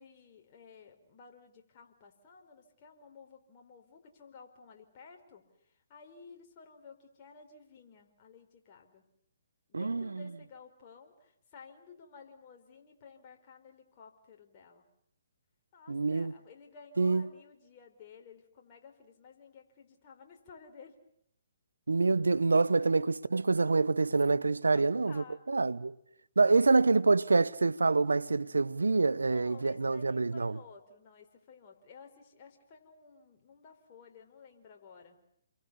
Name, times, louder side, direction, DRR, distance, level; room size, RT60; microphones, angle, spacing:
voice 1, 0.0-9.1 9.7-14.9 15.7-21.0 22.8-23.0 24.7-25.7 26.4-26.7 29.3-35.2, left 5 dB, 35° left, 4.7 m, -54 dB
voice 2, 9.7-10.3 15.9-16.3 17.0-17.3 21.9-25.9 26.4-30.6, right 3 dB, 85° right, 1.0 m, -26 dB
29.5 x 23.5 x 7.0 m
hypercardioid pair, 140°, 0 cm